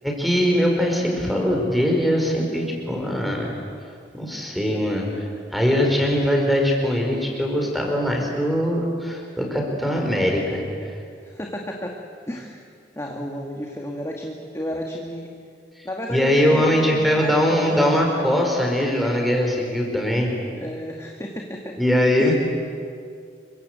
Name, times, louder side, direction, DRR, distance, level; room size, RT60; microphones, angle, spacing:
voice 1, 0.0-3.5 4.1-5.1 5.5-10.6 16.1-20.3 21.8-22.3, equal, ahead, 1 dB, 5.0 m, -21 dB
voice 2, 11.2-12.0 12.3-12.6 12.9-15.3 15.8-17.8 20.5-21.8 22.2-22.3, left 1 dB, 15° left, 1 dB, 2.1 m, -32 dB
28.5 x 24.5 x 8.2 m, 2.3 s
head